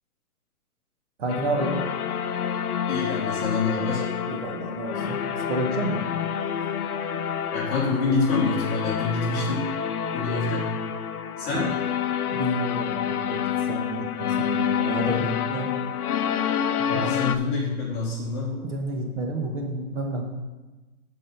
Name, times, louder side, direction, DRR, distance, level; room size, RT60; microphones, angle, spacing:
voice 1, 1.2-1.8 4.3-5.2 5.5-6.0 11.5-11.7 12.3-15.7 16.9-17.1 18.6-20.2, right 1 dB, 55° right, 1 dB, 1.6 m, -29 dB
sound 1, 1.3-17.4, left 8 dB, 90° left, 0.7 m, -28 dB
voice 2, 2.9-4.1 7.5-9.7 10.1-10.7 11.4-11.7 16.8-18.6, left 4 dB, 15° left, -5 dB, 1.4 m, -26 dB
11.5 x 4.1 x 5.3 m, 1.2 s
hypercardioid pair, 165°, 44 cm